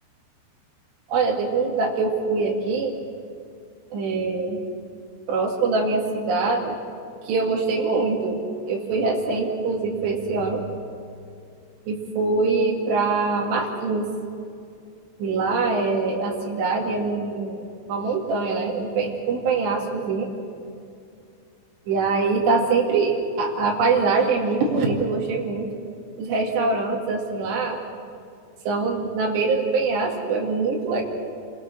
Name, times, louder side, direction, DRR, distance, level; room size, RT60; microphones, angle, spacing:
voice 1, 1.1-2.9 3.9-4.6 5.3-6.7 7.2-8.4 8.6-10.6 11.9-14.1 15.2-20.3 21.9-25.7 26.2-27.8 28.7-31.0, right 4 dB, 70° right, -1 dB, 4.5 m, -23 dB
27.5 x 23.5 x 6.4 m, 2.4 s
omnidirectional pair, 5.1 m